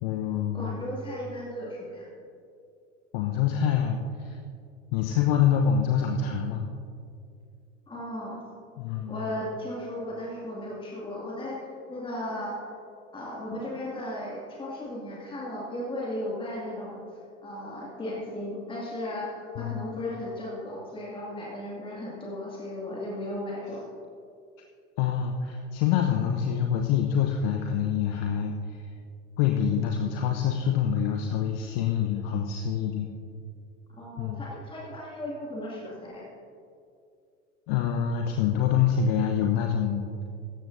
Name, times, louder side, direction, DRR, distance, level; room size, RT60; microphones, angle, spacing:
voice 1, 0.0-0.7 3.1-4.4 4.9-6.6 8.8-9.2 19.6-19.9 25.0-28.8 29.4-33.1 34.2-34.5 37.7-40.1, left 8 dB, 50° left, 3 dB, 1.0 m, -26 dB
voice 2, 0.5-2.1 7.9-8.4 9.1-11.6 11.9-12.7 13.1-17.0 17.4-23.9 34.0-36.3, left 1 dB, 15° left, -4 dB, 2.3 m, -36 dB
16.5 x 13.5 x 2.7 m, 2.4 s
figure-of-eight pair, 75°, 38 cm